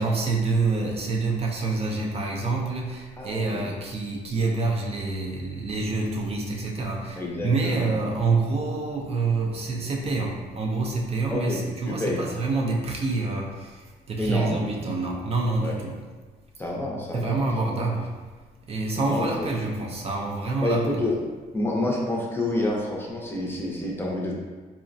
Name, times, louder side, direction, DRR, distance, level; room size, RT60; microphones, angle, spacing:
voice 1, 0.0-15.9 17.1-18.1 18.7-21.0, right 3 dB, 40° right, -1 dB, 0.4 m, -27 dB
voice 2, 3.2-3.6 7.2-7.9 11.3-11.6 11.9-12.2 14.2-14.6 15.6-15.8 16.6-17.4 17.7-17.8 19.0-19.5 20.6-21.2 21.5-24.3, left 1 dB, 15° left, -3 dB, 0.5 m, -28 dB
3.7 x 2.1 x 2.5 m, 1.4 s
cardioid pair, 115°, 16 cm